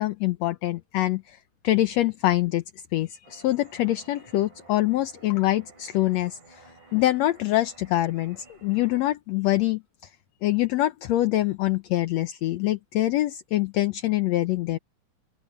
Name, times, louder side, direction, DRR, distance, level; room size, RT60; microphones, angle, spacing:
voice 1, 0.0-1.4 1.6-2.6 2.9-6.6 6.9-9.8 10.4-14.8, left 15 dB, 70° left, 1.9 m, -24 dB
sound 1, 3.2-9.0, right 3 dB, 80° right, 8.0 m, -53 dB
open air
omnidirectional pair, 3.5 m